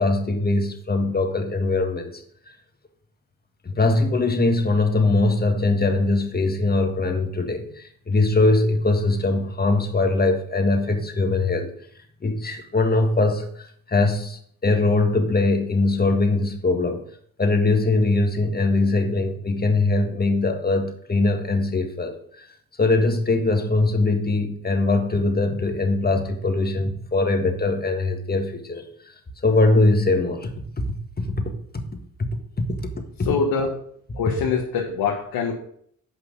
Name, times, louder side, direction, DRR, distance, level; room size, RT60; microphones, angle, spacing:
voice 1, 0.0-2.2 3.6-11.7 12.2-17.0 17.4-22.5 22.8-28.8 29.4-30.5 30.8-30.9 31.2-31.8 32.8-32.9 33.2-33.3, left 2 dB, 25° left, 5 dB, 1.6 m, -21 dB
voice 2, 33.2-33.7 34.2-35.5, left 5 dB, 85° left, -1 dB, 1.3 m, -24 dB
7.9 x 5.6 x 5.1 m, 0.65 s
supercardioid pair, 65°, 35 cm